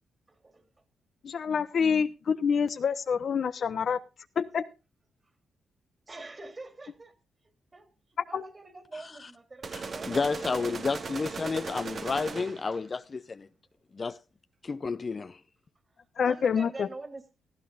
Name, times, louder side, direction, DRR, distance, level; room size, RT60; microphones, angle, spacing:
voice 1, 0.3-0.6 6.1-7.1 7.7-7.9 8.2-10.6 16.3-17.2, right 2 dB, 30° right, 3.0 m, -45 dB
voice 2, 1.2-4.0 4.4-4.6 8.2-8.4 16.2-16.9, left 6 dB, 60° left, 1.0 m, -27 dB
voice 3, 8.9-9.3 9.7-13.5 13.9-14.2 14.6-15.4, left 4 dB, 40° left, 0.6 m, -31 dB
sound 1, 9.6-12.8, right 4 dB, 55° right, 1.5 m, -38 dB
17.5 x 13.5 x 2.5 m
supercardioid pair, 50°, 0 cm